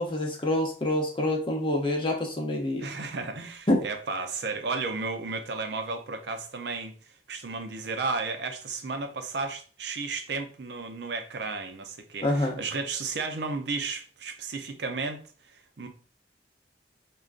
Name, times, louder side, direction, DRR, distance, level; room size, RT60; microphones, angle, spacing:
voice 1, 0.0-2.9 3.7-3.8 12.2-12.5, left 1 dB, 30° left, 0.7 m, -26 dB
voice 2, 2.8-15.9, right 4 dB, 70° right, 0.6 m, -33 dB
5.0 x 2.3 x 2.4 m
head